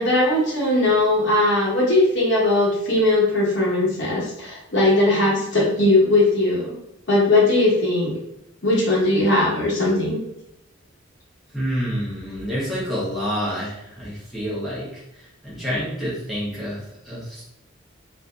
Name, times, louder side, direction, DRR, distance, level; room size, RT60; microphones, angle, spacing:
voice 1, 0.0-6.7 7.1-8.1 8.6-10.2, left 2 dB, 60° left, -4 dB, 1.0 m, -19 dB
voice 2, 11.5-17.4, equal, ahead, -9 dB, 0.8 m, -28 dB
2.6 x 2.5 x 2.3 m, 0.81 s
head